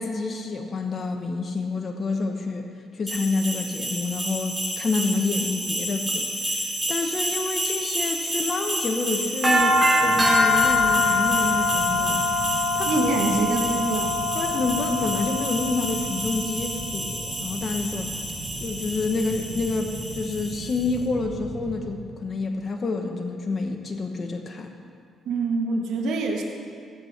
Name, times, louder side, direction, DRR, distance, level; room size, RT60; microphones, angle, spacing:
voice 1, 0.0-2.7 2.9-6.3 6.9-12.2 12.7-13.2 14.3-18.2 18.6-24.7, left 3 dB, 45° left, 4 dB, 1.1 m, -28 dB
sound 1, 3.1-20.8, left 1 dB, 10° right, 3.8 m, -25 dB
sound 2, 10.0-21.9, right 2 dB, 55° right, 2.3 m, -38 dB
voice 2, 12.8-14.1 25.3-26.4, right 4 dB, 80° right, 0 dB, 1.4 m, -25 dB
16.0 x 8.2 x 5.8 m, 2.3 s
cardioid pair, 90°, 0 cm